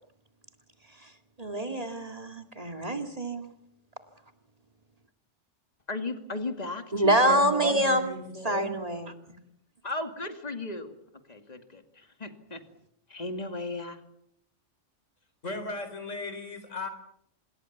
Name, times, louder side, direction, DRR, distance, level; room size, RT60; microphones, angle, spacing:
voice 1, 1.4-3.5 6.9-8.1 8.4-9.4, right 1 dB, 30° right, 2.2 m, -26 dB
voice 2, 5.9-7.3 9.8-10.9 11.3-12.6 13.1-14.0, left 2 dB, 35° left, 2.3 m, -36 dB
voice 3, 7.2-8.8 15.4-16.9, left 2 dB, 90° left, 4.6 m, -37 dB
26.5 x 21.0 x 7.2 m
omnidirectional pair, 1.3 m